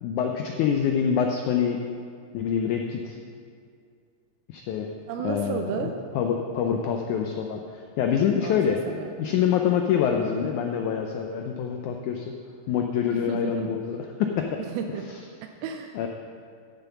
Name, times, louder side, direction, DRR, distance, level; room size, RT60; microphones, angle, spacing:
voice 1, 0.0-1.8 2.3-3.2 4.5-4.9 5.2-5.9 6.1-8.8 9.2-12.3 12.7-14.6 15.1-15.2 15.9-16.1, left 8 dB, 90° left, 3 dB, 1.7 m, -26 dB
voice 2, 5.1-5.9 8.4-8.6 8.9-9.3 13.1-13.7 14.6-15.1 15.4-16.0, right 7 dB, 85° right, 5 dB, 2.5 m, -33 dB
14.0 x 7.1 x 5.8 m, 2.3 s
omnidirectional pair, 4.2 m